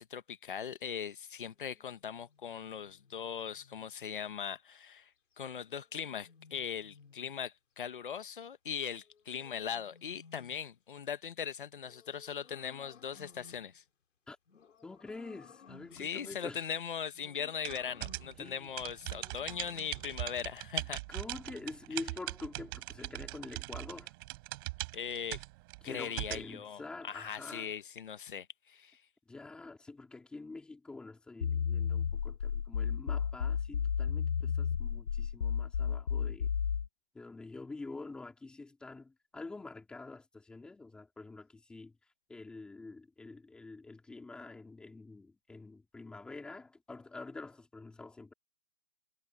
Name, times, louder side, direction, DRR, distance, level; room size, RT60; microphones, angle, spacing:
voice 1, 0.0-5.1 5.4-13.8 15.9-21.0 24.9-25.4 25.8-29.0, left 7 dB, 45° left, 1.5 m, -40 dB
sound 1, 1.5-3.9 5.6-7.4 8.8-10.8 11.8-13.8 14.5-16.2 17.1-18.5 19.0-20.3, left 5 dB, 75° left, 5.8 m, -59 dB
voice 2, 14.8-16.7 18.4-18.8 21.1-24.1 25.8-27.8 29.3-36.5 37.1-42.0 42.3-48.3, left 3 dB, ahead, 3.1 m, -47 dB
Typing Sound, 17.6-26.5, right 23 dB, 20° right, 4.4 m, -41 dB
sound 2, 31.4-36.9, left 7 dB, 60° left, 3.2 m, -32 dB
hypercardioid pair, 180°, 37 cm